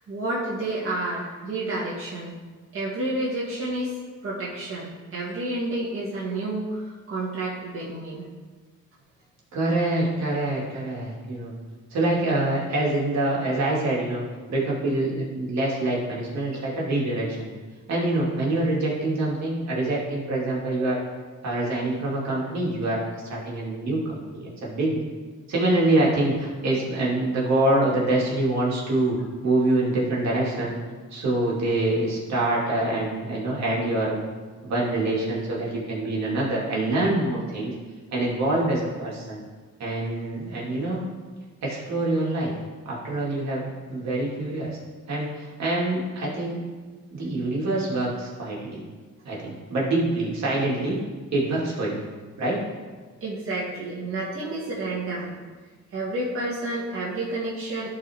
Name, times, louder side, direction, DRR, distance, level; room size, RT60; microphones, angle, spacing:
voice 1, 0.1-2.3 2.7-3.9 4.2-8.3 53.2-55.3 55.9-57.9, right 2 dB, 45° right, -7 dB, 1.9 m, -30 dB
voice 2, 9.5-11.5 11.9-17.5 17.9-21.0 21.4-23.0 23.3-25.1 25.5-29.2 29.4-30.8 31.1-34.2 34.6-37.7 38.1-39.4 39.8-41.0 41.6-42.6 42.9-44.8 45.1-46.6 47.1-48.8 49.2-51.0 51.3-52.0 52.4-52.6, right 2 dB, 65° right, -5 dB, 2.4 m, -25 dB
11.5 x 4.2 x 3.5 m, 1.4 s
cardioid pair, 90°, 30 cm